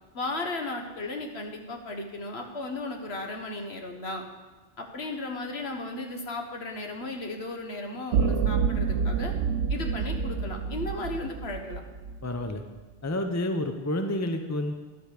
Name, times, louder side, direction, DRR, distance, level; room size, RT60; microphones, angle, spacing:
voice 1, 0.1-4.2 4.8-9.3 9.7-11.8, left 2 dB, 60° left, 3 dB, 1.6 m, -35 dB
sound 1, 8.1-12.4, right 6 dB, 90° right, 1.0 m, -28 dB
voice 2, 12.2-12.6 13.0-14.7, left 1 dB, 15° left, 5 dB, 0.7 m, -29 dB
11.5 x 8.1 x 6.7 m, 1.2 s
omnidirectional pair, 1.2 m